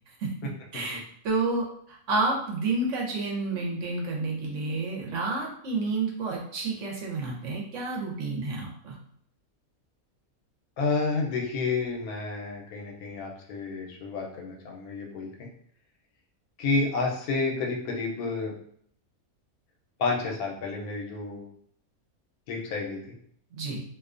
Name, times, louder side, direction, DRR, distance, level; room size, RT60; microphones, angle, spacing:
voice 1, 0.7-9.0 23.5-23.8, right 3 dB, 65° right, -2 dB, 0.9 m, -30 dB
voice 2, 10.8-15.5 16.6-18.5 20.0-21.4 22.5-23.1, left 3 dB, 90° left, 0 dB, 1.1 m, -30 dB
2.6 x 2.2 x 2.4 m, 0.64 s
omnidirectional pair, 1.5 m